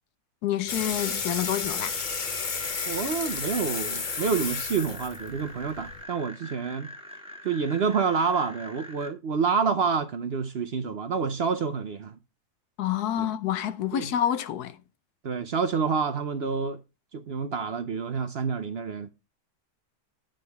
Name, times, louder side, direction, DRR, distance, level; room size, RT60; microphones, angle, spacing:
voice 1, 0.4-1.9 12.8-14.8, left 10 dB, 85° left, 1.3 m, -28 dB
sound 1, 0.7-6.0, left 5 dB, 40° left, 0.8 m, -32 dB
sound 2, 1.4-9.1, equal, 5° right, 1.6 m, -44 dB
voice 2, 2.9-6.9 7.4-12.2 13.2-13.3 13.9-14.1 15.2-16.8 17.1-19.1, right 5 dB, 55° right, 0.8 m, -28 dB
9.8 x 6.5 x 3.4 m
omnidirectional pair, 1.6 m